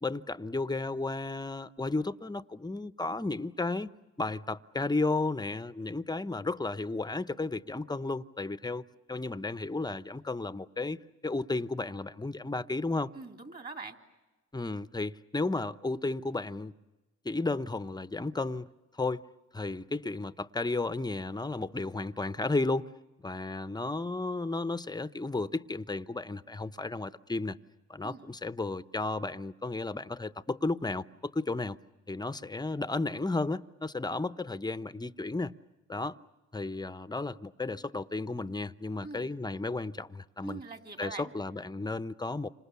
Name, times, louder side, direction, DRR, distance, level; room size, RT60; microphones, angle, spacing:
voice 1, 0.0-3.9 4.2-8.8 9.1-13.1 14.5-16.7 17.2-18.7 18.9-19.2 19.5-22.9 23.2-27.6 27.9-31.8 32.1-35.5 35.9-36.2 36.5-40.6 41.0-42.5, left 3 dB, 15° left, 0.8 m, -33 dB
voice 2, 13.1-14.0 28.0-28.3 39.0-39.4 40.4-41.3, right 3 dB, 30° right, 3.3 m, -43 dB
30.0 x 26.5 x 7.0 m
cardioid pair, 75°, 30 cm